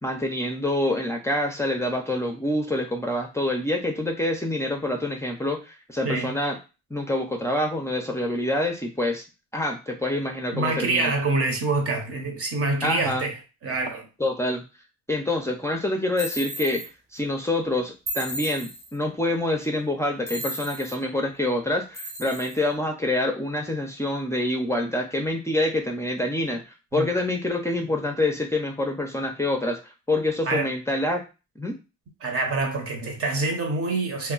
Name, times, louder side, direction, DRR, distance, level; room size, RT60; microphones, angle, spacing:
voice 1, 0.0-6.6 6.9-9.2 9.5-11.1 12.8-13.3 14.2-14.6 15.1-16.8 17.1-26.6 26.9-31.2 31.6-31.8, left 1 dB, 10° left, 0.5 m, -26 dB
voice 2, 10.5-13.4 13.6-14.1 26.9-27.1 30.4-30.7 32.2-34.3, right 3 dB, 50° right, 0.9 m, -26 dB
sound 1, 16.2-16.9 18.1-18.9 20.3-21.0 21.9-22.6, equal, 20° right, 0.8 m, -34 dB
2.2 x 2.1 x 3.8 m
cardioid pair, 90°, 30 cm